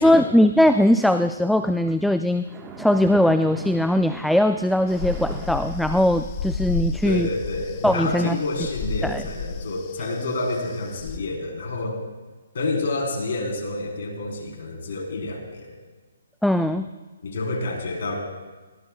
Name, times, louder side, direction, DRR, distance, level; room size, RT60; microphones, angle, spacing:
voice 1, 0.0-2.5 2.8-7.3 7.8-8.4 9.0-9.2 16.4-16.9, left 1 dB, ahead, 9 dB, 0.3 m, -20 dB
Splash splatter, 2.4-6.5, right 4 dB, 15° right, 1.3 m, -40 dB
sound 1, 4.9-11.2, left 4 dB, 30° left, 0.9 m, -33 dB
voice 2, 7.0-12.0 12.5-15.7 17.2-18.2, left 2 dB, 60° left, 1 dB, 3.6 m, -28 dB
22.0 x 16.0 x 2.3 m, 1.3 s
hypercardioid pair, 145°, 0 cm